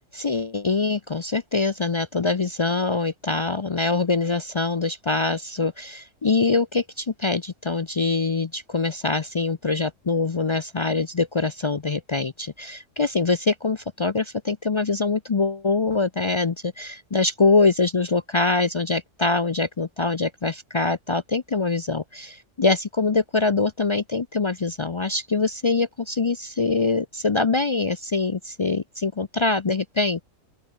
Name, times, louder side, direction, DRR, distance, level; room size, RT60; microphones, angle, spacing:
voice 1, 0.1-30.2, left 3 dB, 45° left, 0.3 m, -24 dB
open air
omnidirectional pair, 1.4 m